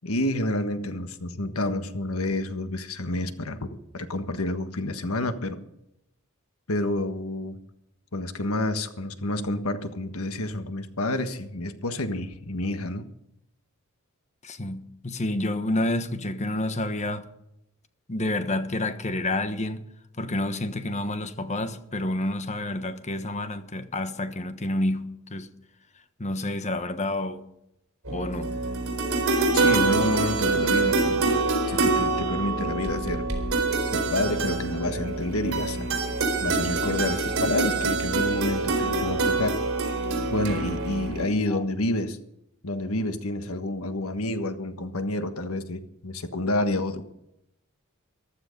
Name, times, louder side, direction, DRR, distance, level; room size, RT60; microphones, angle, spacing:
voice 1, 0.0-3.7 3.9-5.6 6.7-7.6 8.1-13.1 29.5-31.4 31.7-33.3 33.9-35.9 36.4-39.6 40.3-42.2 42.6-47.0, left 1 dB, 90° left, 1.5 m, -29 dB
voice 2, 14.4-17.2 18.1-19.8 20.2-25.5 26.2-27.4 28.1-28.6 41.5-41.6, left 1 dB, 35° left, 1.3 m, -29 dB
sound 1, 28.1-41.3, right 3 dB, 70° right, 4.3 m, -25 dB
15.0 x 12.5 x 5.3 m
head